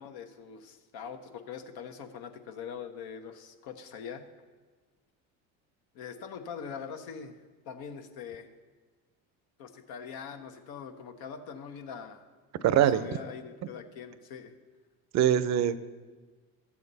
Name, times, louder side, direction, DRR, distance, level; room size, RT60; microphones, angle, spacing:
voice 1, 0.0-4.3 5.9-7.4 7.7-8.5 9.6-12.2 12.8-14.5, left 7 dB, 70° left, 6 dB, 1.0 m, -42 dB
voice 2, 12.6-13.1 15.1-15.8, right 10 dB, 45° right, 15 dB, 0.6 m, -23 dB
12.5 x 7.3 x 4.1 m, 1.4 s
supercardioid pair, 80°, 38 cm